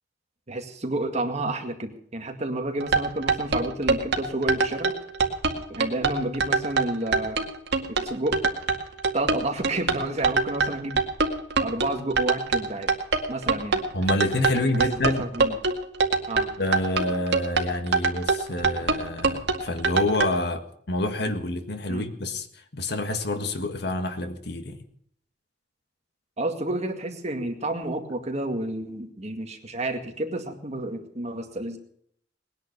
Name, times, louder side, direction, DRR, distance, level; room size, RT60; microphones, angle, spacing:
voice 1, 0.5-4.9 5.7-7.4 7.9-8.5 9.1-11.0 11.6-12.9 13.3-13.8 14.6-14.9 15.2-15.6 16.3-16.5 21.9-22.1 26.4-31.8, right 2 dB, 40° right, 5 dB, 2.1 m, -30 dB
sound 1, 2.8-20.3, right 4 dB, 65° right, 2.1 m, -23 dB
voice 2, 13.9-15.3 16.6-22.5 22.7-24.8, left 1 dB, 65° left, 8 dB, 1.7 m, -28 dB
20.0 x 10.5 x 6.8 m, 0.65 s
head